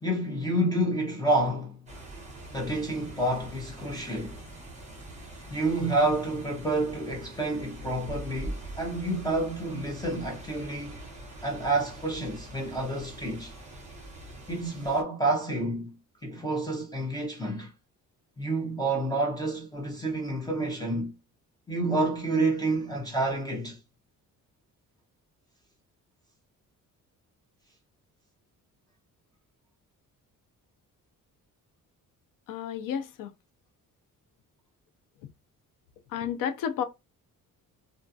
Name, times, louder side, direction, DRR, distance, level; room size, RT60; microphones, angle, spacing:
voice 1, 0.0-1.8 2.5-4.5 5.5-11.0 11.4-13.5 14.5-15.9 16.2-17.7 18.4-21.1 21.7-23.8, right 2 dB, 10° left, 0.4 m, -29 dB
sound 1, 1.9-15.0, right 1 dB, 20° right, 0.8 m, -43 dB
voice 2, 32.5-33.3 35.2-35.3 36.1-36.8, left 8 dB, 75° left, 0.5 m, -31 dB
2.4 x 2.2 x 2.6 m
cardioid pair, 175°, 33 cm